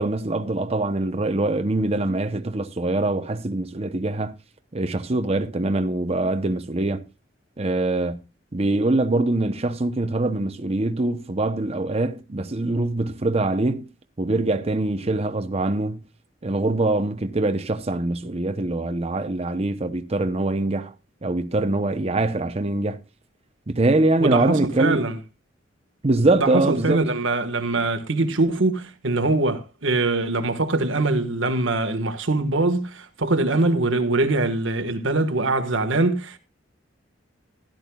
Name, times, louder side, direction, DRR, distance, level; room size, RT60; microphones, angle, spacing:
voice 1, 0.0-4.3 4.7-7.0 7.6-8.2 8.5-13.8 14.2-16.0 16.4-20.9 21.2-23.0 23.7-25.0 26.0-27.0, right 2 dB, 35° right, 0.8 m, -23 dB
voice 2, 24.2-25.2 26.4-36.4, right 2 dB, 90° right, 1.5 m, -23 dB
16.5 x 12.0 x 2.3 m
head